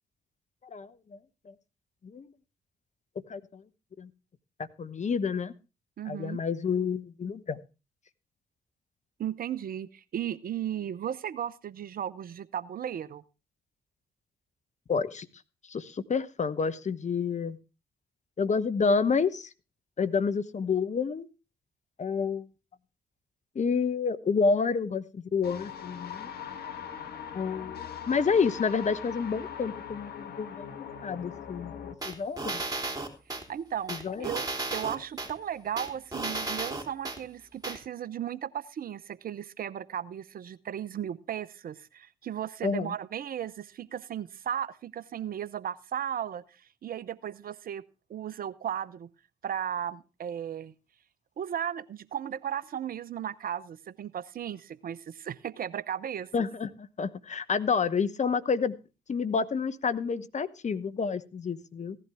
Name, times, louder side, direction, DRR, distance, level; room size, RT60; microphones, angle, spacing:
voice 1, 3.3-3.6 4.0-4.1 4.8-5.5 6.1-7.6 14.9-15.3 15.7-17.6 18.4-19.5 20.0-21.3 22.0-22.5 23.5-26.3 27.3-30.6 31.0-31.8 32.0-32.6 33.9-34.3 42.6-42.9 56.3-58.7 59.1-62.0, left 5 dB, 40° left, 13 dB, 1.0 m, -29 dB
voice 2, 6.0-6.4 9.2-13.2 33.5-34.5 34.7-47.8 48.1-49.1 49.4-50.7 51.4-56.5, right 9 dB, 55° right, 18 dB, 0.7 m, -35 dB
sound 1, 25.4-32.0, left 8 dB, 65° left, 1.4 m, -41 dB
sound 2, 32.0-33.4 33.9-35.3 35.8-37.2 37.6-37.8, right 2 dB, 20° right, 3.3 m, -33 dB
16.0 x 11.0 x 3.5 m, 0.30 s
hypercardioid pair, 45°, 18 cm